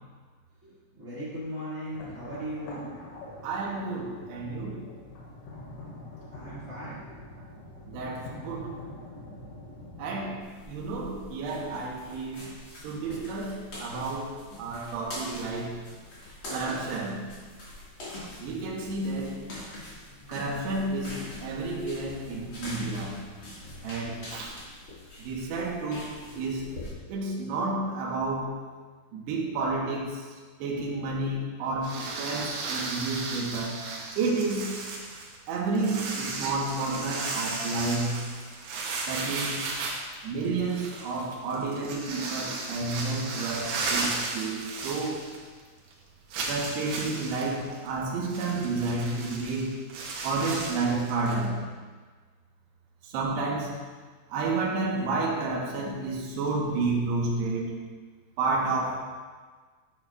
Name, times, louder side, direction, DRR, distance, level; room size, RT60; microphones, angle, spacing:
voice 1, 0.6-2.9 6.2-7.1, equal, 45° right, -10 dB, 1.0 m, -38 dB
sound 1, 1.9-10.4, left 1 dB, 85° left, 4.6 m, -44 dB
voice 2, 3.4-4.9 7.9-8.8 10.0-15.8 16.5-17.4 18.4-19.5 20.3-23.3 23.8-24.6 25.2-26.7 27.1-28.6 29.1-30.3 30.6-33.8 34.2-34.9 35.5-38.3 39.1-39.6 40.2-45.3 46.5-49.9 50.2-51.7 53.0-53.9 54.3-57.8 58.4-59.0, right 3 dB, 70° right, -2 dB, 2.9 m, -31 dB
sound 2, 10.4-26.9, left 1 dB, 50° left, 1.5 m, -43 dB
sound 3, 31.8-45.6 45.9-46.0 46.3-51.5, right 3 dB, 90° right, 3.8 m, -35 dB
10.5 x 8.8 x 2.4 m, 1.4 s
omnidirectional pair, 5.6 m